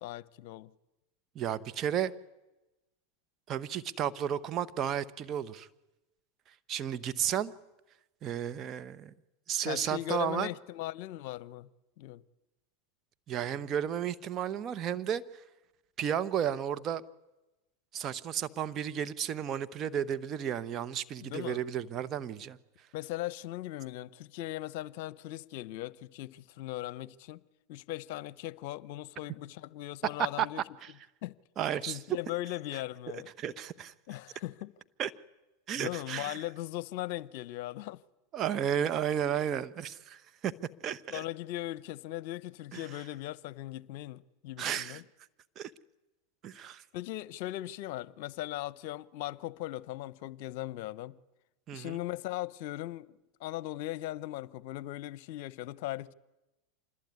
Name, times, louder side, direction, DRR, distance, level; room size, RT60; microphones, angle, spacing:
voice 1, 0.0-0.7 9.6-11.7 12.0-12.2 21.2-21.6 22.9-27.4 27.7-30.6 31.2-31.3 31.9-33.3 34.1-34.7 35.8-38.0 41.1-45.0 46.9-51.2 51.7-56.1, left 15 dB, 65° left, 0.8 m, -39 dB
voice 2, 1.3-2.1 3.5-5.7 6.7-7.5 8.2-9.1 9.5-10.5 13.3-15.2 16.0-17.0 17.9-22.6 30.4-30.5 30.8-30.9 31.6-32.0 33.4-33.9 35.0-35.1 35.7-36.3 38.3-40.5 40.8-41.2 42.7-42.8 44.6-45.0 45.6-45.7 46.4-46.8 51.7-52.0, right 9 dB, 40° right, 1.2 m, -33 dB
26.0 x 20.5 x 9.6 m
hypercardioid pair, 95°, 0 cm